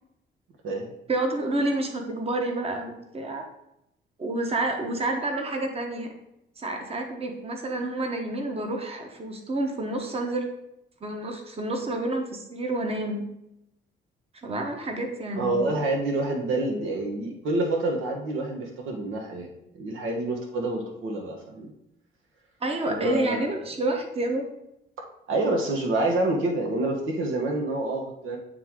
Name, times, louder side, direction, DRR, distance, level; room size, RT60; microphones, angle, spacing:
voice 1, 1.1-3.4 4.2-6.1 6.6-10.5 11.0-13.3 14.4-15.7 22.6-24.5, right 2 dB, 30° right, 3 dB, 1.0 m, -29 dB
voice 2, 15.3-19.5 19.7-21.7 22.9-23.6 25.3-28.4, right 2 dB, 85° right, 1 dB, 1.2 m, -27 dB
8.9 x 3.3 x 3.7 m, 0.84 s
cardioid pair, 90°, 20 cm